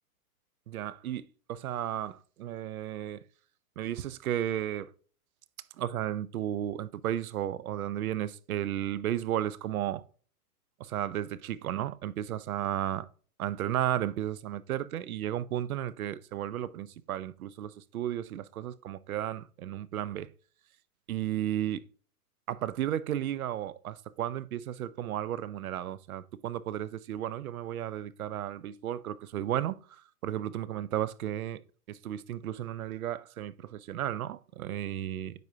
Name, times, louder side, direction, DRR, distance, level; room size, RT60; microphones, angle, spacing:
voice 1, 0.7-3.2 3.8-4.9 5.8-10.0 10.8-13.1 13.4-20.3 21.1-21.8 22.5-31.6 31.9-35.3, right 11 dB, 70° right, 0.7 m, -34 dB
9.3 x 4.9 x 2.8 m
hypercardioid pair, 165°, 46 cm